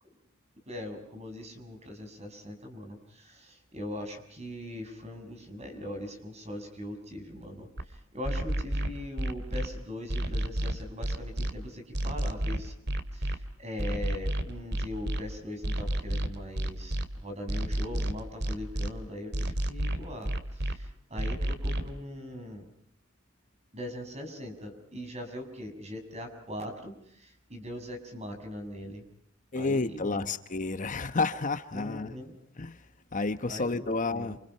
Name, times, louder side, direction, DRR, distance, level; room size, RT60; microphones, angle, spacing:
voice 1, 0.6-12.7 13.1-22.7 23.7-29.0 29.5-30.3 31.7-32.3 33.5-34.3, left 1 dB, 35° right, 6 dB, 6.6 m, -41 dB
sound 1, 7.8-7.9 8.2-9.7 10.1-11.5 11.9-13.4 13.8-15.2 15.6-17.1 17.5-18.9 19.3-20.7 21.2-21.9, right 1 dB, 55° right, 2.4 m, -30 dB
voice 2, 29.5-32.1 32.6-34.4, left 3 dB, 40° left, 11 dB, 1.0 m, -31 dB
28.5 x 27.5 x 5.6 m, 0.69 s
head